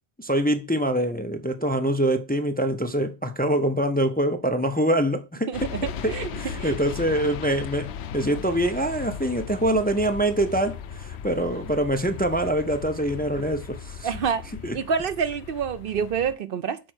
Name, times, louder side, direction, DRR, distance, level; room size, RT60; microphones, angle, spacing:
voice 1, 0.2-5.7 6.0-14.1 14.6-14.8, right 1 dB, 10° left, 0.6 m, -24 dB
sound 1, 5.5-16.3, left 7 dB, 90° left, 0.9 m, -37 dB
voice 2, 5.5-6.3 6.6-6.8 14.0-14.5 14.7-16.8, right 6 dB, 65° right, 0.8 m, -27 dB
6.3 x 4.5 x 6.2 m
omnidirectional pair, 1.1 m